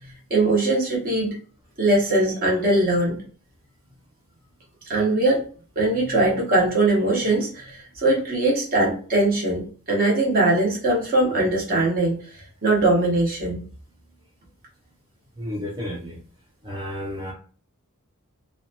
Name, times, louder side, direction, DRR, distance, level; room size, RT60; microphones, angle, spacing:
voice 1, 0.3-1.3 1.8-3.2 4.9-5.4 5.8-12.2 12.6-13.6, right 2 dB, 40° right, -3 dB, 1.0 m, -21 dB
voice 2, 15.3-16.2 16.6-17.3, left 1 dB, 20° right, -4 dB, 0.5 m, -32 dB
2.6 x 2.1 x 2.7 m, 0.41 s
head